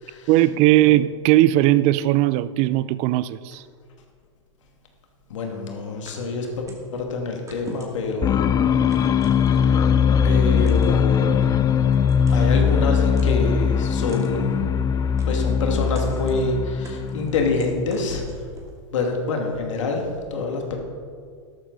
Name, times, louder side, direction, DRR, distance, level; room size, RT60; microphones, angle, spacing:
voice 1, 0.3-3.6, right 15 dB, 45° right, 16 dB, 0.5 m, -18 dB
voice 2, 5.3-8.8 9.6-10.0 10.2-12.0 12.3-14.7 15.3-18.4 18.9-20.8, left 3 dB, 75° left, 2 dB, 2.3 m, -27 dB
sound 1, 6.1-6.9 7.5-8.2 8.9-9.8 10.6-11.0 11.9-12.5 13.1-13.6 14.1-14.3 15.2-15.6 15.9-16.5 16.8-18.7, right 2 dB, 20° right, 2.4 m, -44 dB
sound 2, 8.2-17.8, left 7 dB, 20° left, 0.4 m, -20 dB
13.0 x 12.0 x 4.1 m, 2.1 s
hypercardioid pair, 105°, 16 cm